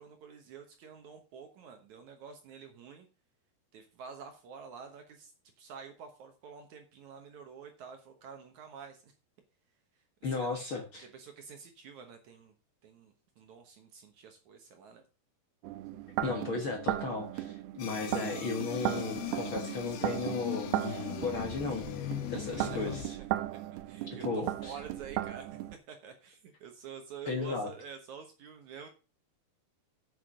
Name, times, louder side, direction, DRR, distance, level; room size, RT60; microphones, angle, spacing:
voice 1, 0.0-3.1 3.7-5.3 5.6-9.1 10.3-12.5 12.8-15.0 22.2-23.0 23.7-25.6 25.9-28.9, right 6 dB, 65° right, 6 dB, 2.0 m, -49 dB
voice 2, 10.2-11.1 16.2-21.9 22.3-23.2 24.2-24.8 27.3-27.7, left 4 dB, 65° left, 3 dB, 1.2 m, -35 dB
sound 1, 15.6-25.8, right 15 dB, 80° right, 2.5 m, -37 dB
sound 2, 17.8-23.0, left 11 dB, 85° left, 3.2 m, -40 dB
8.5 x 6.6 x 6.1 m, 0.32 s
omnidirectional pair, 4.6 m